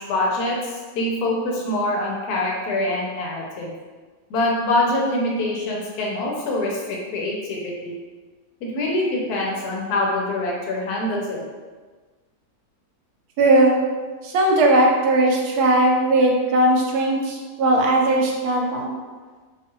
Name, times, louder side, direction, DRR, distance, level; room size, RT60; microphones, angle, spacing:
voice 1, 0.0-3.7 4.3-7.9 8.6-11.4, left 1 dB, 85° left, -2 dB, 1.2 m, -24 dB
voice 2, 13.4-13.8 14.2-18.9, right 1 dB, 85° right, 0 dB, 1.1 m, -18 dB
2.8 x 2.3 x 2.9 m, 1.4 s
omnidirectional pair, 1.6 m